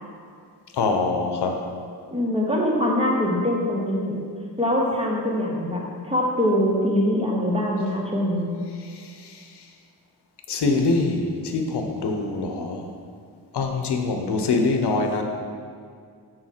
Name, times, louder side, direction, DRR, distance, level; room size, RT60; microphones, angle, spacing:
voice 1, 0.7-1.6 8.8-9.6 10.5-12.9 13.5-15.2, left 3 dB, 85° left, 4 dB, 0.8 m, -24 dB
voice 2, 2.1-4.3 4.6-8.5, left 1 dB, 15° right, -2 dB, 0.9 m, -23 dB
6.4 x 4.5 x 5.9 m, 2.2 s
wide cardioid pair, 165°, 39 cm